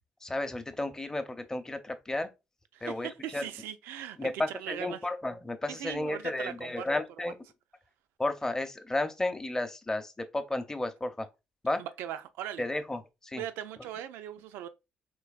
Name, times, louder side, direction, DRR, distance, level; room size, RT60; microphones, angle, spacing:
voice 1, 0.2-2.3 2.8-3.5 4.2-7.3 8.2-11.3 11.6-11.8 12.6-13.4, left 2 dB, 15° left, 0.6 m, -33 dB
voice 2, 2.7-5.1 5.7-6.9 7.2-7.3 11.8-12.7 13.4-14.7, right 11 dB, 80° right, 0.4 m, -39 dB
3.8 x 3.1 x 2.4 m
supercardioid pair, 65°, 4 cm